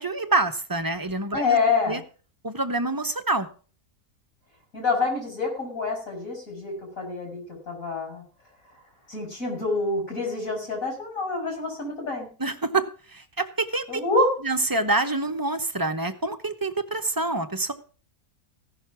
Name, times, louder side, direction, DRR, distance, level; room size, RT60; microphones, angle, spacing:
voice 1, 0.0-1.6 1.9-2.0 2.4-3.5 12.4-14.0 14.4-17.7, right 2 dB, 20° right, 7 dB, 0.8 m, -26 dB
voice 2, 1.3-2.0 4.7-7.4 7.7-8.2 9.1-12.3 13.9-14.4, left 3 dB, 60° left, 1 dB, 5.6 m, -26 dB
16.0 x 6.6 x 5.8 m, 0.38 s
omnidirectional pair, 1.6 m